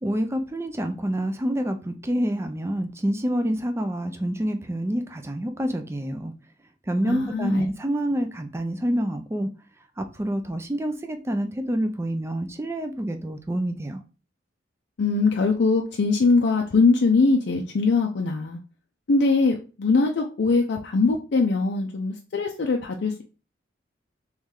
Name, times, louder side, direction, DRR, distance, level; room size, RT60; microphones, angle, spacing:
voice 1, 0.0-6.3 6.9-9.5 10.0-14.0, equal, 15° right, 0.4 m, -27 dB
voice 2, 7.0-7.6 15.0-18.6 19.1-23.2, left 3 dB, 65° left, 0.5 m, -22 dB
3.1 x 3.1 x 3.7 m
head